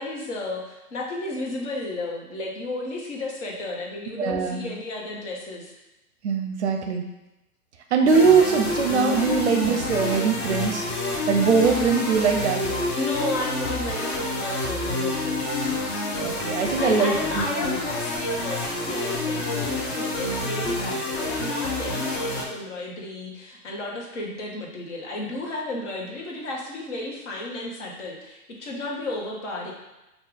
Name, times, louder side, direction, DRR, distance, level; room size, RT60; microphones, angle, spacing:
voice 1, 0.0-5.7 13.0-15.7 16.8-29.7, left 2 dB, 50° left, -1 dB, 1.2 m, -33 dB
voice 2, 4.2-4.7 6.2-7.0 7.9-10.9 11.3-12.6 16.2-17.8, right 5 dB, 50° right, 4 dB, 0.6 m, -22 dB
sound 1, 8.1-22.4, left 2 dB, 25° left, 0.7 m, -28 dB
5.4 x 2.4 x 3.7 m, 0.98 s
figure-of-eight pair, 120°, 45 cm